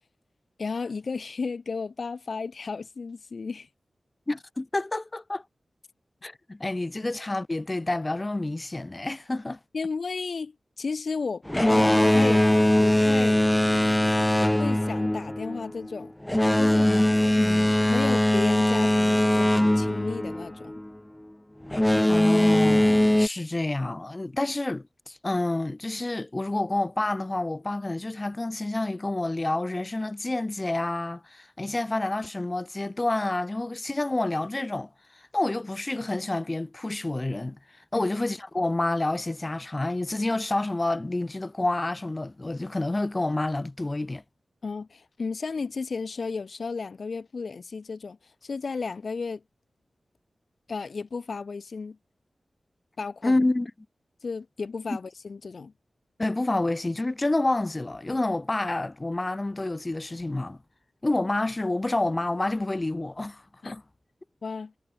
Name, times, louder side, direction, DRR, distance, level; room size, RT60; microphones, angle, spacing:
voice 1, 0.6-3.7 9.7-12.5 12.8-13.4 14.6-16.1 16.6-16.9 17.9-20.8 37.9-38.1 44.6-48.2 48.4-49.4 50.7-52.0 53.0-53.4 54.2-55.7 63.6-63.7 64.4-64.7, left 4 dB, 65° left, 0.9 m, -33 dB
voice 2, 4.3-5.4 6.2-9.6 16.8-17.0 17.4-17.7 22.1-37.6 37.9-44.2 53.2-53.7 56.2-60.6 61.0-63.8, left 2 dB, 30° left, 2.3 m, -28 dB
Boat Water vehicle, 11.5-20.9 21.7-23.3, left 1 dB, 10° left, 1.0 m, -21 dB
wide cardioid pair, 75°, 0 cm